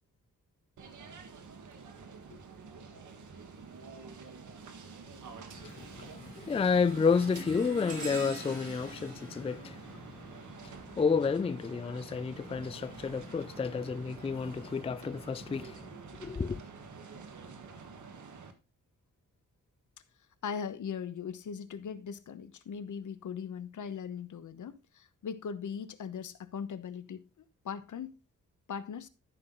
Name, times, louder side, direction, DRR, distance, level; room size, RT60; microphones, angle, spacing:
sound 1, 0.8-18.5, right 5 dB, 70° right, 1.7 m, -49 dB
sound 2, 3.3-3.7 4.2-11.0 12.2-14.5 15.1-15.3 16.2-16.3, right 1 dB, 50° right, 4.7 m, -47 dB
voice 1, 5.6-15.9 16.2-16.6, left 5 dB, 20° left, 0.4 m, -31 dB
voice 2, 20.4-27.3 27.6-28.2 28.7-29.1, left 7 dB, 70° left, 1.0 m, -39 dB
13.0 x 5.8 x 3.9 m
wide cardioid pair, 110°, 31 cm